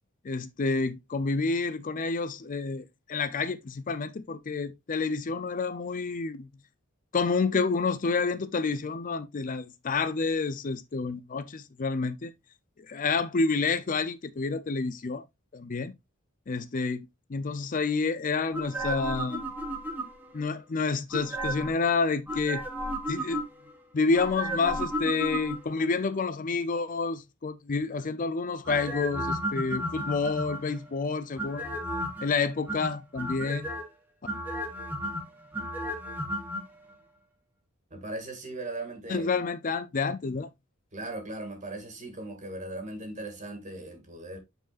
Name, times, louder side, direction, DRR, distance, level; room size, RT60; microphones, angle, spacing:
voice 1, 0.2-6.5 7.1-12.3 12.8-15.2 15.5-15.9 16.5-19.4 20.3-22.6 23.1-23.4 23.9-31.8 32.2-33.7 39.1-40.5, left 4 dB, 40° left, 0.5 m, -29 dB
sound 1, 18.5-20.4 21.1-21.8 22.3-23.7 24.1-25.8 28.6-30.8 31.4-32.3 32.7-33.8 34.2-36.6 36.9-37.0, equal, 10° right, 1.4 m, -33 dB
voice 2, 37.9-39.3 40.9-44.4, right 2 dB, 35° right, 2.1 m, -38 dB
8.9 x 4.7 x 2.5 m
head